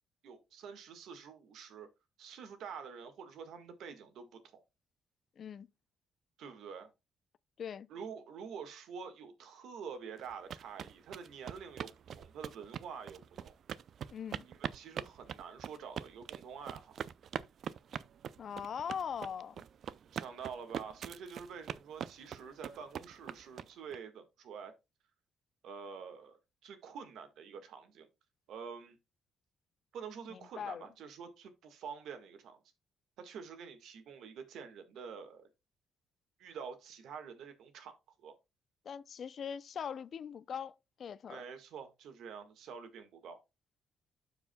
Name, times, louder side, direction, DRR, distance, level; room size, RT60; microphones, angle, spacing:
voice 1, 0.2-1.9 2.2-4.6 6.4-6.9 7.9-13.6 14.4-17.0 20.0-24.7 25.6-28.1 28.5-29.0 29.9-32.6 33.2-35.5 36.4-38.3 41.3-43.4, right 6 dB, 80° right, 1.6 m, -47 dB
voice 2, 5.4-5.7 7.6-7.9 14.1-14.5 18.4-19.6 30.3-30.9 38.8-41.4, left 7 dB, 55° left, 0.5 m, -41 dB
sound 1, 10.2-24.0, right 8 dB, 60° right, 0.4 m, -43 dB
12.5 x 4.8 x 2.2 m
cardioid pair, 90°, 0 cm